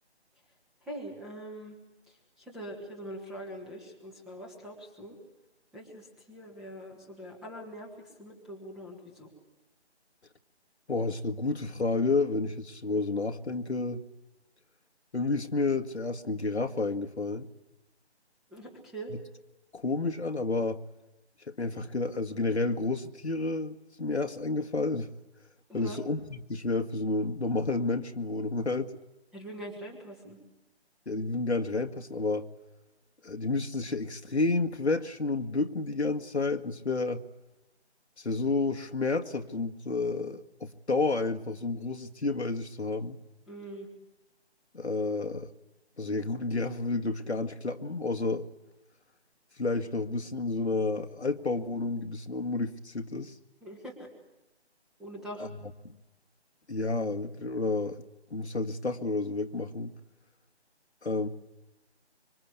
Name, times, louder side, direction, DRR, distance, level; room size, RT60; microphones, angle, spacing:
voice 1, 0.8-1.7 2.1-5.2 5.7-9.3 18.5-19.1 25.7-26.0 29.3-30.4 43.5-43.9 53.6-54.1 55.0-55.5, right 1 dB, ahead, -1 dB, 1.6 m, -43 dB
voice 2, 10.9-14.0 15.1-17.5 19.1-19.2 19.7-20.8 21.5-25.1 25.7-28.9 31.1-32.5 33.2-37.2 38.2-43.2 44.7-45.5 46.0-48.5 49.6-53.4 55.4-55.5 55.8-56.0 56.7-58.0 58.3-59.9 61.0-61.3, left 3 dB, 75° left, 4 dB, 2.0 m, -30 dB
25.5 x 25.0 x 8.3 m, 1.0 s
figure-of-eight pair, 160°, 34 cm